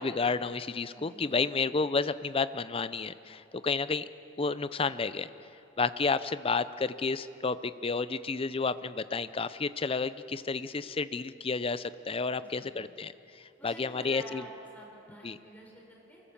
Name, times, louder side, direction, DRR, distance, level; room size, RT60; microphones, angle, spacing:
voice 1, 0.0-4.0 4.4-5.3 5.8-13.1 13.6-14.4 15.2-15.4, left 4 dB, 30° left, 14 dB, 0.6 m, -31 dB
voice 2, 0.9-1.4 12.3-12.8 13.6-14.5 14.7-16.2, right 1 dB, 10° left, -1 dB, 4.6 m, -49 dB
24.5 x 19.5 x 7.3 m, 2.8 s
head